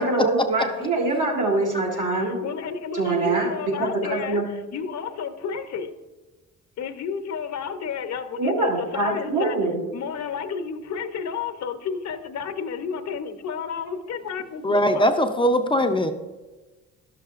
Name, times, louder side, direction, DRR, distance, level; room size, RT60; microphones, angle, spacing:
voice 1, 0.0-2.4 2.9-4.5 8.4-9.8, right 2 dB, 75° right, -2 dB, 2.4 m, -24 dB
voice 2, 2.2-5.9 6.8-9.6 9.9-15.1, left 6 dB, 60° left, 7 dB, 0.8 m, -31 dB
voice 3, 14.6-16.1, equal, 15° left, 5 dB, 0.5 m, -20 dB
12.0 x 6.6 x 2.4 m, 1.2 s
cardioid pair, 90°, 30 cm